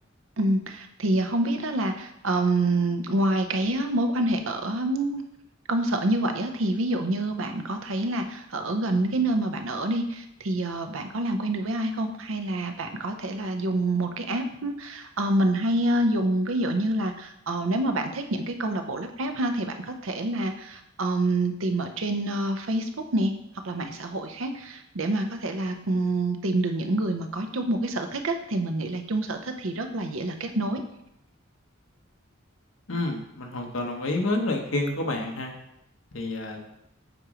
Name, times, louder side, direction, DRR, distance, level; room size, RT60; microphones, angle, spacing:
voice 1, 0.4-5.2 5.7-23.3 23.6-30.8, right 1 dB, 85° right, 6 dB, 0.7 m, -27 dB
voice 2, 32.9-35.5 36.1-36.6, left 2 dB, 75° left, 2 dB, 1.1 m, -28 dB
7.7 x 3.1 x 4.9 m, 0.79 s
head